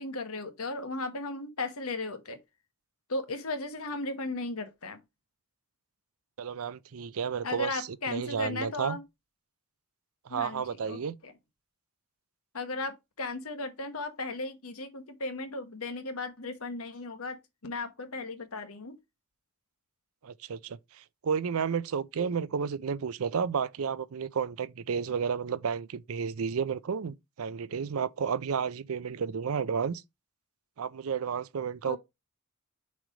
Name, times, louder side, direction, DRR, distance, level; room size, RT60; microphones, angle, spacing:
voice 1, 0.0-2.4 3.1-5.0 7.4-9.0 10.3-11.3 12.5-17.4 17.6-18.9 31.8-32.0, left 2 dB, 75° left, 1.2 m, -36 dB
voice 2, 6.4-9.0 10.3-11.2 20.2-30.0 30.8-32.0, right 6 dB, 70° right, 0.5 m, -32 dB
6.3 x 3.3 x 5.0 m
head